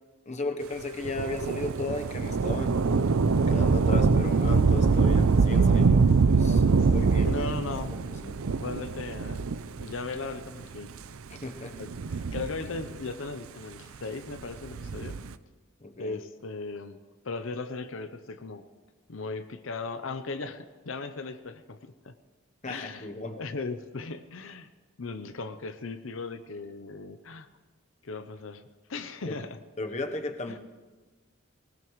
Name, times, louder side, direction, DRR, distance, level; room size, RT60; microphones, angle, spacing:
voice 1, 0.3-2.7 3.5-6.6 6.9-8.4 11.3-11.8 15.8-16.2 22.6-23.4 29.2-29.4 29.8-30.6, left 2 dB, 35° left, 5 dB, 0.9 m, -35 dB
Thunder / Rain, 1.0-10.0 10.8-10.9 11.8-13.1 14.6-15.3, right 4 dB, 85° right, 0.5 m, -24 dB
voice 2, 7.2-8.0 8.6-9.4 9.8-10.9 11.8-15.2 16.0-17.0 17.2-18.6 19.1-22.1 22.7-24.7 25.0-27.5 28.0-28.6 28.9-29.6 30.5-30.6, left 3 dB, 70° left, 9 dB, 0.7 m, -37 dB
20.5 x 18.5 x 3.1 m, 1.3 s
head